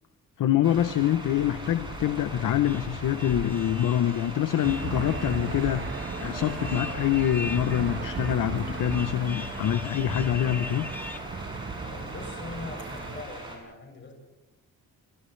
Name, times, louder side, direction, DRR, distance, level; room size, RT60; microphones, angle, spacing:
voice 1, 0.4-10.9, left 11 dB, 60° left, 10 dB, 0.8 m, -25 dB
sound 1, 0.6-13.6, right 1 dB, 15° right, 6.6 m, -40 dB
sound 2, 2.3-11.2, left 2 dB, 5° left, 1.2 m, -42 dB
Aircraft / Engine, 4.6-13.2, right 4 dB, 30° right, 1.3 m, -36 dB
voice 2, 11.8-14.1, left 2 dB, 30° left, 1 dB, 7.5 m, -41 dB
29.5 x 28.0 x 3.3 m, 1.1 s
wide cardioid pair, 150°, 36 cm